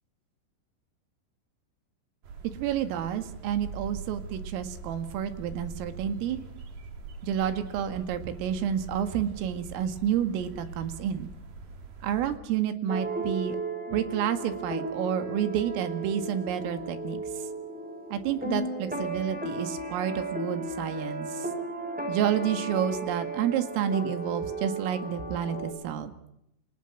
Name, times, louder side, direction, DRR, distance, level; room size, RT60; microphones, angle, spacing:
sound 1, 2.2-12.4, right 3 dB, 50° right, 4.4 m, -43 dB
voice 1, 2.6-6.4 7.2-11.3 12.0-13.6 13.9-17.2 18.1-21.5 22.1-26.1, right 9 dB, 85° right, 9 dB, 4.6 m, -30 dB
sound 2, 12.9-25.7, right 2 dB, ahead, 7.4 m, -35 dB
29.5 x 26.5 x 6.1 m, 0.80 s
omnidirectional pair, 5.8 m